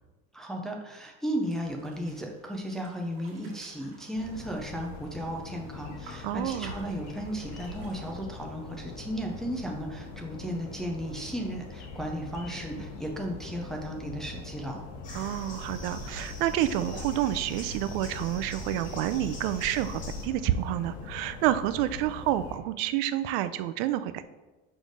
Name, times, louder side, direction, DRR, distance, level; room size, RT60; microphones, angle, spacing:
voice 1, 0.3-14.8, equal, ahead, 0 dB, 0.4 m, -35 dB
sound 1, 1.4-8.1, right 2 dB, 50° right, 1.7 m, -54 dB
sound 2, 4.1-22.6, left 3 dB, 50° left, 1.0 m, -43 dB
voice 2, 6.2-6.8 15.1-24.2, right 13 dB, 70° right, 13 dB, 0.4 m, -29 dB
sound 3, 15.0-20.3, left 1 dB, 25° left, 0.9 m, -41 dB
6.3 x 3.3 x 5.1 m, 1.1 s
cardioid pair, 175°, 30 cm